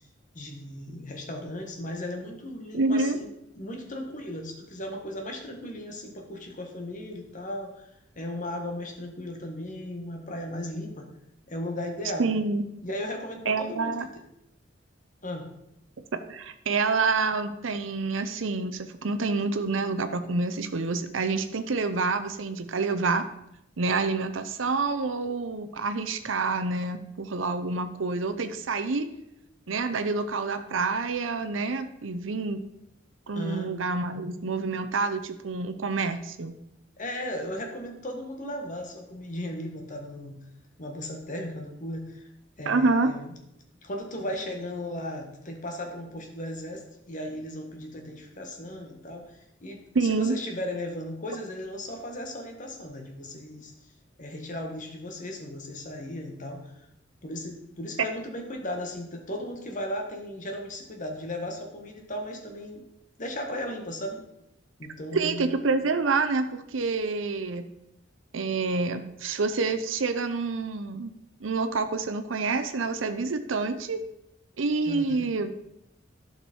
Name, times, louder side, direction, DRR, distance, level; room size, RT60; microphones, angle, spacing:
voice 1, 0.3-3.3 3.6-7.9 8.1-11.1 11.5-12.3 12.8-13.9 15.2-15.5 33.3-33.7 37.0-40.4 40.8-42.3 42.6-43.3 43.8-53.7 54.2-56.7 57.2-62.8 63.2-64.2 64.8-65.6 74.9-75.3, left 1 dB, 40° left, 3 dB, 1.6 m, -36 dB
voice 2, 2.7-3.2 12.2-12.6 13.5-14.1 16.3-23.2 23.8-29.1 29.7-32.6 33.3-36.6 42.7-43.1 49.9-50.4 58.0-58.1 65.1-67.7 68.3-71.1 71.4-74.0 74.6-75.5, right 4 dB, 80° right, 9 dB, 0.7 m, -27 dB
11.5 x 5.9 x 4.5 m, 0.83 s
head